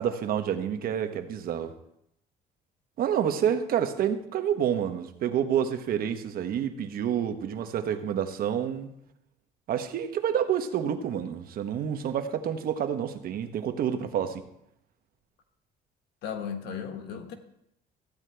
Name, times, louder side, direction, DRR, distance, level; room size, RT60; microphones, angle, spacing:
voice 1, 0.0-1.7 3.0-8.9 9.7-14.4, right 9 dB, 60° right, 9 dB, 1.0 m, -28 dB
voice 2, 16.2-17.4, left 7 dB, 90° left, 6 dB, 1.3 m, -35 dB
14.5 x 9.0 x 3.4 m, 0.77 s
cardioid pair, 110°, 17 cm